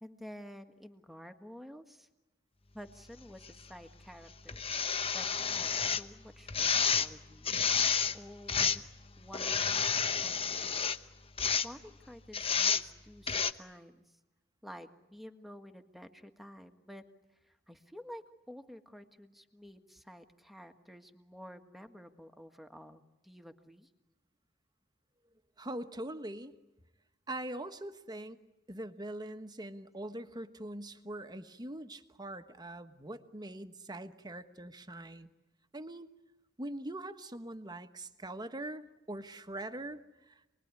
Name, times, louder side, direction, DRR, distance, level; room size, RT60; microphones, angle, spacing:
voice 1, 0.0-2.1 2.7-4.8 5.1-7.5 8.1-8.8 9.2-10.6 11.6-14.0 14.6-17.0 17.5-23.9 37.1-37.2, equal, ahead, 6 dB, 1.7 m, -51 dB
sound 1, 3.4-3.5 4.5-6.0 6.5-7.1 7.4-8.2 8.5-8.9 9.3-11.0 11.4-11.7 12.3-12.8 13.3-13.5, left 6 dB, 30° left, 1.0 m, -30 dB
voice 2, 25.6-26.5 27.3-28.4 28.7-35.3 35.7-36.1 36.6-40.6, right 1 dB, 20° right, 9 dB, 1.3 m, -42 dB
28.0 x 21.0 x 9.8 m, 1.0 s
head